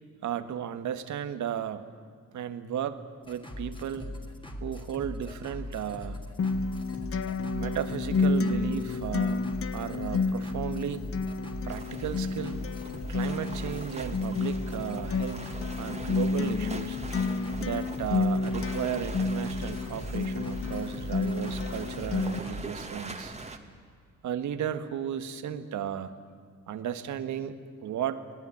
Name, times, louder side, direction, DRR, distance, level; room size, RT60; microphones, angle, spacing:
voice 1, 0.2-1.8 2.3-3.0 3.3-4.0 4.6-6.2 7.5-9.4 9.7-11.0 11.6-12.6 13.1-15.5 15.8-17.0 17.6-23.3 24.2-26.1 26.7-27.6 27.8-28.2, right 9 dB, 75° right, 10 dB, 1.7 m, -34 dB
sound 1, 3.2-22.6, left 1 dB, 15° left, 3.6 m, -40 dB
Acoustic guitar, 6.4-22.4, left 4 dB, 45° left, 1.3 m, -31 dB
sound 2, 11.7-23.6, right 3 dB, 20° right, 2.3 m, -44 dB
25.5 x 18.0 x 10.0 m, 2.1 s
cardioid pair, 90°, 30 cm